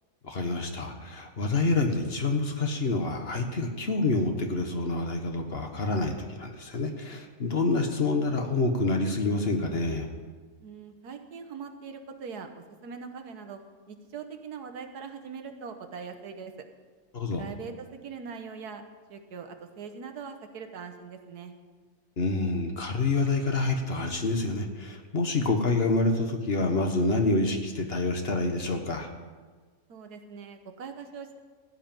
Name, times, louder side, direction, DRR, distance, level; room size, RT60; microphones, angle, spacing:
voice 1, 0.2-10.1 17.1-17.4 22.2-29.1, left 3 dB, 45° left, 4 dB, 1.3 m, -27 dB
voice 2, 10.6-12.5 12.8-13.6 13.9-16.5 17.3-18.8 19.1-21.5 29.9-31.4, right 5 dB, 85° right, 7 dB, 1.7 m, -41 dB
15.5 x 5.7 x 9.0 m, 1.4 s
omnidirectional pair, 1.6 m